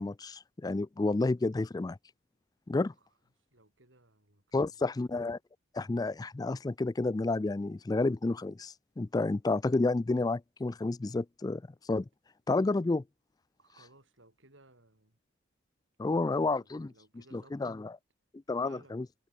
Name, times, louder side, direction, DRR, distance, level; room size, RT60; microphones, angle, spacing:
voice 1, 0.0-2.0 2.7-2.9 4.5-5.4 5.7-11.6 11.9-12.1 12.5-13.0 16.0-16.9 17.3-17.9 18.5-19.1, left 3 dB, 20° left, 0.3 m, -30 dB
voice 2, 3.5-4.9 13.6-15.2 16.0-17.8 18.6-19.0, right 2 dB, 75° right, 6.4 m, -60 dB
head